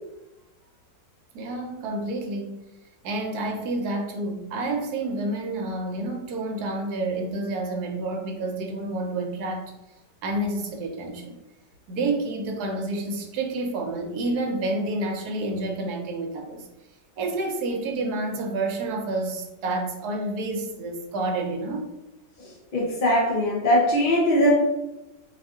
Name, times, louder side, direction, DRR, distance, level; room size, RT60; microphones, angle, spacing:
voice 1, 1.3-2.7 3.0-9.7 10.2-11.4 11.9-16.7 17.2-21.9, right 2 dB, 65° right, 2 dB, 1.2 m, -29 dB
voice 2, 22.7-24.5, equal, 40° left, -4 dB, 0.8 m, -20 dB
4.8 x 2.6 x 3.6 m, 0.96 s
omnidirectional pair, 1.9 m